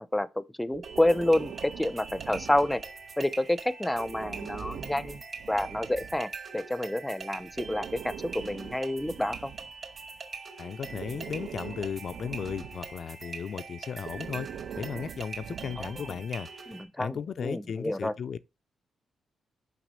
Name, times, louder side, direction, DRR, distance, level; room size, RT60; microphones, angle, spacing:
voice 1, 0.1-2.8 3.2-5.2 5.5-9.5 15.8-16.1 16.7-18.1, left 1 dB, 5° left, 0.6 m, -29 dB
Breathing, 0.7-3.1 3.9-6.3 7.4-10.2 10.8-13.0 14.0-16.3, right 8 dB, 75° right, 0.4 m, -43 dB
sound 1, 0.8-16.8, right 4 dB, 45° right, 2.4 m, -43 dB
voice 2, 10.6-14.5 14.8-16.7 17.0-18.4, left 7 dB, 55° left, 0.4 m, -35 dB
5.9 x 5.9 x 5.5 m
cardioid pair, 110°, 0 cm